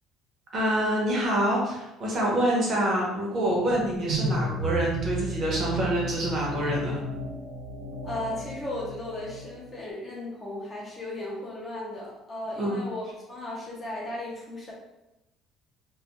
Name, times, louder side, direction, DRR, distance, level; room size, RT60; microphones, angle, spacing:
voice 1, 0.5-7.0 12.6-12.8, right 1 dB, 35° right, -3 dB, 0.7 m, -26 dB
sound 1, 3.4-9.7, right 2 dB, 60° right, 1.0 m, -34 dB
voice 2, 8.0-14.7, left 1 dB, 20° left, -4 dB, 0.5 m, -36 dB
2.2 x 2.2 x 2.9 m, 0.93 s
cardioid pair, 165°, 0 cm